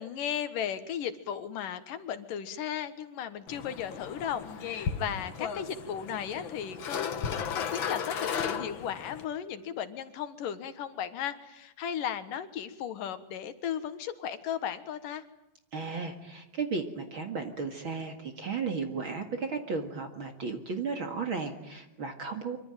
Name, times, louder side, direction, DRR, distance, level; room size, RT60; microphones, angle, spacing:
voice 1, 0.0-15.2, left 9 dB, 75° left, 11 dB, 2.9 m, -36 dB
sound 1, 3.5-9.2, left 7 dB, 55° left, 1.5 m, -35 dB
voice 2, 15.7-22.6, right 4 dB, 45° right, 5 dB, 2.3 m, -34 dB
25.0 x 25.0 x 9.0 m, 0.88 s
omnidirectional pair, 4.0 m